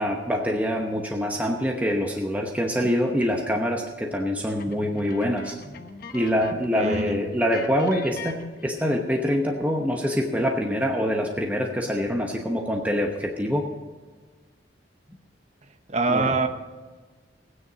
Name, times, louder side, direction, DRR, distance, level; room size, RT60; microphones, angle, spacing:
voice 1, 0.0-5.6 6.1-13.7 16.1-16.3, equal, 10° right, 1 dB, 0.9 m, -25 dB
sound 1, 4.6-6.8 7.0-7.2 7.5-9.1, left 4 dB, 50° left, 1.0 m, -41 dB
voice 2, 6.7-7.2 15.9-16.5, right 3 dB, 35° right, 7 dB, 0.9 m, -24 dB
16.5 x 9.7 x 5.1 m, 1.4 s
head